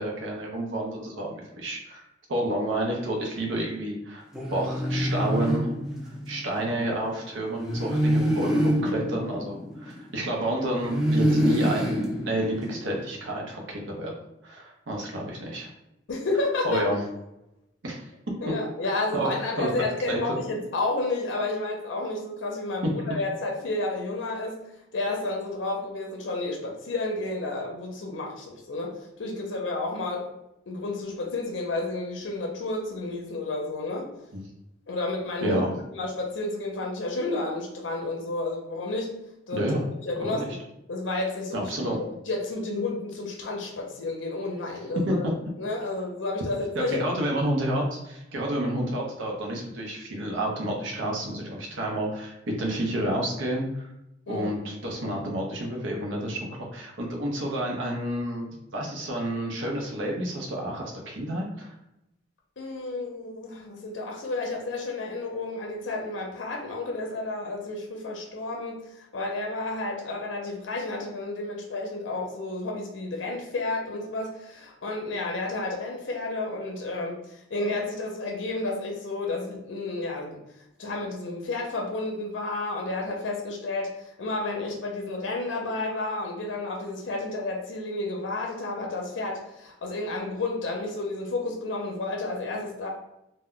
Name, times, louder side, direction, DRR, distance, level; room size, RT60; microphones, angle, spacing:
voice 1, 0.0-4.2 4.5-5.7 6.3-14.1 14.4-15.7 16.6-17.0 17.8-18.1 19.1-19.3 19.6-20.4 22.8-22.9 34.3-34.4 35.4-35.7 39.5-39.8 40.2-40.5 41.5-42.0 44.9-45.3 46.8-53.9 54.3-61.7, right 1 dB, 80° right, -1 dB, 0.6 m, -30 dB
sound 1, 4.3-6.4 7.6-10.3 10.8-13.1, equal, 5° right, 0.4 m, -26 dB
voice 2, 16.1-16.8 18.4-24.6 24.9-30.3 30.7-34.1 34.9-35.6 35.9-39.1 39.5-39.8 40.0-40.5 40.9-41.7 42.3-45.2 45.6-47.1 54.3-54.5 62.6-80.4 80.8-92.9, left 2 dB, 75° left, 0 dB, 0.5 m, -31 dB
2.1 x 2.1 x 3.6 m, 0.87 s
head